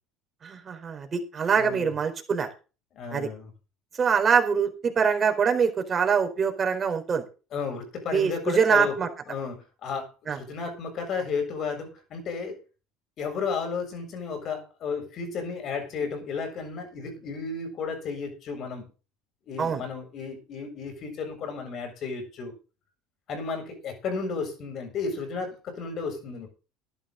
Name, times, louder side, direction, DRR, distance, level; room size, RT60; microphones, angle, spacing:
voice 1, 0.4-2.5 3.1-3.3 4.0-7.2 8.1-9.1 10.3-10.4 19.6-19.8, right 6 dB, 35° right, 5 dB, 4.1 m, -24 dB
voice 2, 1.6-1.9 2.9-3.5 7.5-9.0 9.3-12.6 13.2-18.9 19.5-22.5 23.3-26.5, left 5 dB, 50° left, 6 dB, 7.2 m, -33 dB
13.5 x 11.5 x 4.0 m, 0.33 s
hypercardioid pair, 85°, 0 cm